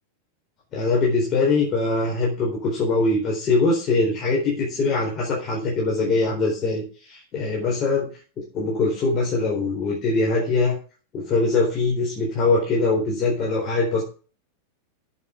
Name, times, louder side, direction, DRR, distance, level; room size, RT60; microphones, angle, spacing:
voice 1, 0.7-8.0 8.4-10.8 11.1-14.0, left 3 dB, 30° left, -2 dB, 4.1 m, -22 dB
8.4 x 7.4 x 8.0 m, 0.37 s
figure-of-eight pair, 90°, 0 cm